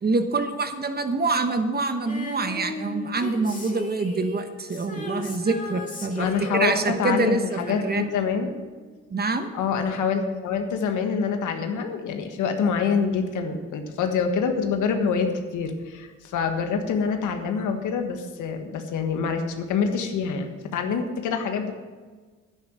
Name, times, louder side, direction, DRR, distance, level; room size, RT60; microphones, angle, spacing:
voice 1, 0.0-6.3 6.5-8.0 9.1-9.5, right 3 dB, 30° right, 8 dB, 1.2 m, -25 dB
Female singing, 2.0-8.7 9.0-9.1, left 2 dB, 25° left, 2.6 m, -37 dB
voice 2, 6.1-8.5 9.5-21.7, left 6 dB, 85° left, 5 dB, 1.5 m, -26 dB
10.5 x 9.8 x 6.2 m, 1.4 s
cardioid pair, 90°, 30 cm